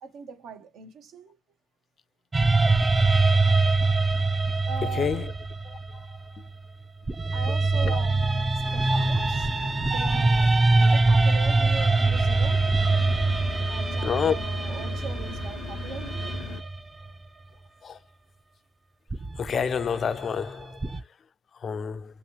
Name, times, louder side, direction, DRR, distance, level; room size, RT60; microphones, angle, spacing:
voice 1, 0.0-1.4 4.7-5.3 7.3-9.5 9.9-12.6 13.7-16.4, right 5 dB, 80° right, 0.8 m, -40 dB
sound 1, 2.3-6.5 7.1-17.1 19.1-21.0, right 3 dB, 25° right, 0.5 m, -24 dB
sound 2, 8.6-16.6, left 6 dB, 90° left, 0.7 m, -41 dB
voice 2, 14.0-14.3 17.8-18.0 19.4-20.7 21.6-22.0, left 7 dB, 55° left, 0.3 m, -27 dB
3.3 x 3.0 x 3.0 m
cardioid pair, 90°, 0 cm